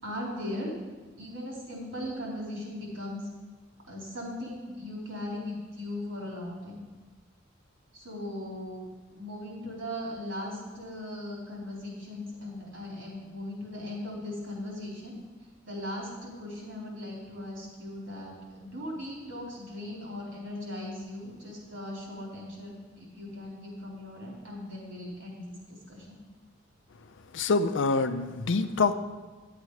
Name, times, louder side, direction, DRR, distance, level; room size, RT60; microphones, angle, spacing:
voice 1, 0.0-0.7 1.1-3.3 3.9-6.8 7.9-8.8 9.1-15.2 15.6-26.2, left 1 dB, 80° right, -4 dB, 4.0 m, -38 dB
voice 2, 27.3-28.9, left 4 dB, 65° left, 10 dB, 0.5 m, -25 dB
10.5 x 8.1 x 4.9 m, 1.3 s
head